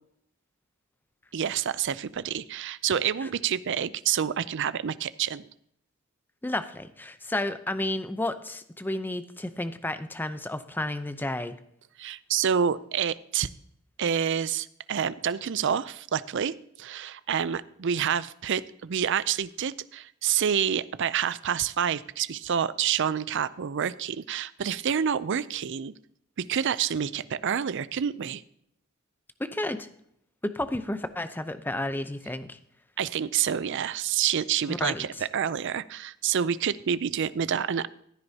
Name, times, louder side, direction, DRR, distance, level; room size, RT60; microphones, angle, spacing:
voice 1, 1.3-5.5 12.0-13.5 14.0-25.9 26.4-28.4 33.0-37.9, right 8 dB, 60° right, 16 dB, 0.5 m, -28 dB
voice 2, 6.4-11.6 29.4-29.9 30.4-32.6 34.7-35.0, left 1 dB, 10° left, 10 dB, 0.6 m, -31 dB
15.5 x 9.7 x 2.8 m, 0.71 s
head